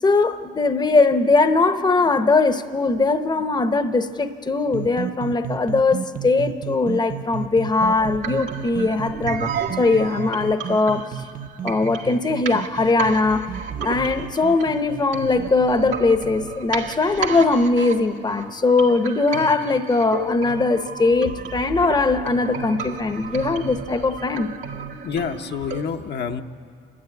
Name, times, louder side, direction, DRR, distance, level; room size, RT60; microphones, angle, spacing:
voice 1, 0.0-11.1 11.6-13.5 13.8-24.5, left 3 dB, 20° left, 10 dB, 0.8 m, -20 dB
sound 1, 4.7-16.2, right 8 dB, 45° right, 0.8 m, -34 dB
sound 2, 7.8-25.8, right 5 dB, 85° right, 2.1 m, -33 dB
voice 2, 25.0-26.4, left 7 dB, 60° left, 5 dB, 0.9 m, -27 dB
27.5 x 12.5 x 9.5 m, 2.5 s
cardioid pair, 90°, 20 cm